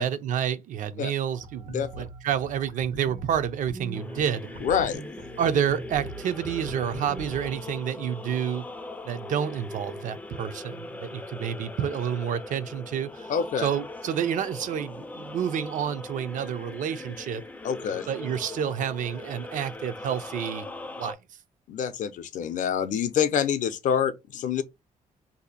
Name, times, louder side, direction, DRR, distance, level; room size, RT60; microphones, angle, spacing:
voice 1, 0.0-1.7 1.9-4.5 5.4-8.6 9.0-13.3 13.6-17.4 18.1-20.7 21.0-21.2, right 8 dB, 65° right, 0.4 m, -29 dB
sound 1, 1.4-7.6, right 3 dB, 85° right, 1.1 m, -40 dB
voice 2, 1.7-2.0 4.6-5.0 13.3-13.7 17.6-18.1 21.7-24.6, left 8 dB, 60° left, 0.5 m, -26 dB
sound 2, 3.9-21.1, left 2 dB, 10° left, 0.3 m, -40 dB
2.7 x 2.4 x 3.9 m
wide cardioid pair, 180°, 15 cm